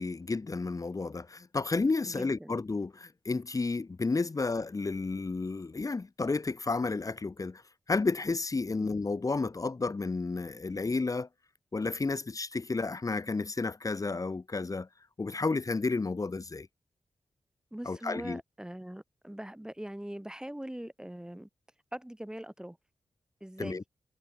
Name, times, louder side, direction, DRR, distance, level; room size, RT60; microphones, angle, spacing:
voice 1, 0.0-7.6 7.9-11.3 11.7-14.9 15.2-16.7 17.8-18.4 23.6-23.8, left 3 dB, 40° left, 1.5 m, -31 dB
voice 2, 2.1-2.6 8.8-8.9 17.7-21.5 21.9-22.8 23.4-23.8, right 1 dB, 10° right, 1.8 m, -42 dB
cardioid pair, 55°, 9 cm